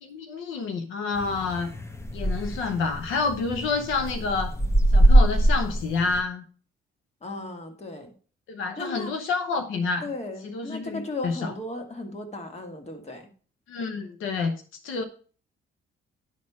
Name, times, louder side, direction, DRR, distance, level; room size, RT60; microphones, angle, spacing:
voice 1, 0.0-1.7 2.1-4.5 4.9-6.4 8.5-10.1 10.4-11.5 13.7-14.6 14.8-15.0, left 4 dB, 85° left, 7 dB, 0.9 m, -28 dB
sound 1, 1.2-6.2, right 1 dB, 15° left, 0.8 m, -23 dB
voice 2, 7.2-8.1 8.8-9.1 10.0-13.3, left 2 dB, 35° left, 5 dB, 1.8 m, -36 dB
11.0 x 4.3 x 4.7 m, 0.39 s
cardioid pair, 90°, 20 cm